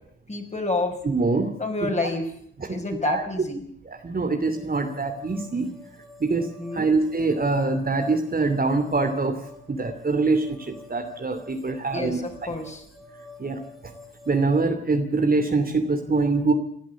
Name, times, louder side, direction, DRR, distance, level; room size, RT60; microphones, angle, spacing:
voice 1, 0.3-1.0 1.6-2.3 2.6-3.6 6.6-6.9 11.9-12.8, left 2 dB, 20° left, 4 dB, 5.7 m, -29 dB
voice 2, 1.0-1.5 1.8-1.9 2.6-2.8 3.0-3.2 3.9-5.7 6.2-6.5 6.7-9.4 9.7-12.2 13.4-13.6 14.3-16.5, right 3 dB, 25° right, 5 dB, 2.7 m, -24 dB
sound 1, 4.5-14.6, left 3 dB, ahead, 4.2 m, -48 dB
29.0 x 11.0 x 8.5 m, 0.65 s
figure-of-eight pair, 45°, 33 cm